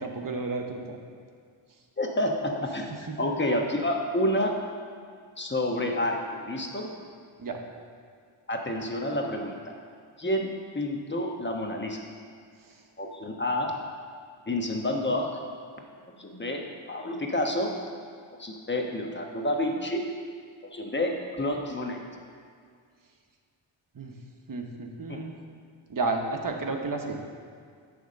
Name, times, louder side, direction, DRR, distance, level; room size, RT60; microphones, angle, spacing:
voice 1, 0.0-1.0 7.4-7.6 23.9-24.1 24.5-25.3 25.9-27.2, right 3 dB, 40° right, 3 dB, 1.1 m, -31 dB
voice 2, 2.0-2.9 3.2-4.5 5.4-6.9 8.5-9.7 10.2-12.0 13.0-13.7 14.5-15.3 16.1-17.7 18.4-20.1 20.6-22.0 25.1-25.2, left 1 dB, 20° left, 1 dB, 1.2 m, -29 dB
9.2 x 3.6 x 6.5 m, 2.1 s
cardioid pair, 65°, 50 cm